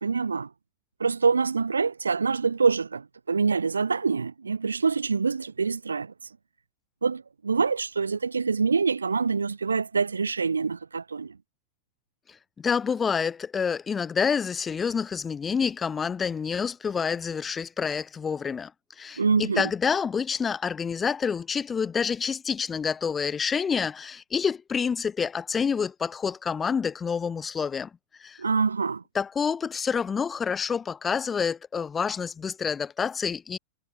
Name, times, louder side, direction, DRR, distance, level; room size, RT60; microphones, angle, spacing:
voice 1, 0.0-0.5 1.0-6.1 7.0-11.4 19.2-19.7 28.4-29.0, right 5 dB, 75° right, 0.4 m, -25 dB
voice 2, 12.6-18.7 19.0-27.9 28.2-28.4 29.1-33.6, left 6 dB, 20° left, 0.4 m, -28 dB
figure-of-eight pair, 90°, 0 cm